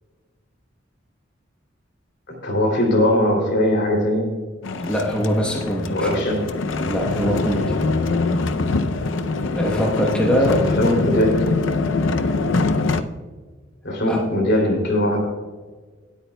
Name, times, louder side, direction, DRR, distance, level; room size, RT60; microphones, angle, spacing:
voice 1, 2.3-4.3 5.9-6.4 10.5-11.5 13.8-15.2, left 1 dB, 60° left, 1 dB, 2.9 m, -20 dB
sound 1, 4.6-13.0, left 3 dB, 80° left, 0.6 m, -23 dB
voice 2, 4.8-6.2 6.8-7.8 9.5-10.7 14.1-14.3, equal, 5° left, -2 dB, 1.1 m, -22 dB
19.0 x 8.5 x 2.3 m, 1.4 s
head